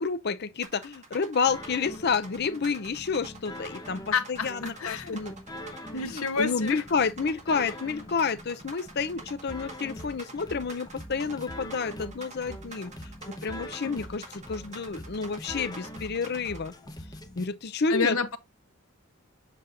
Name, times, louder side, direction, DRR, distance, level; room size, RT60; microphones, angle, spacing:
voice 1, 0.0-4.0 4.3-5.3 6.1-12.9 13.3-16.7 17.4-18.4, left 5 dB, 50° left, 0.6 m, -30 dB
sound 1, 0.6-16.7, right 3 dB, 35° right, 2.0 m, -46 dB
sound 2, 1.5-17.5, left 1 dB, 20° left, 1.0 m, -43 dB
voice 2, 4.1-5.2 5.9-6.8 17.9-18.4, left 5 dB, 85° left, 1.0 m, -29 dB
7.6 x 6.3 x 2.5 m
head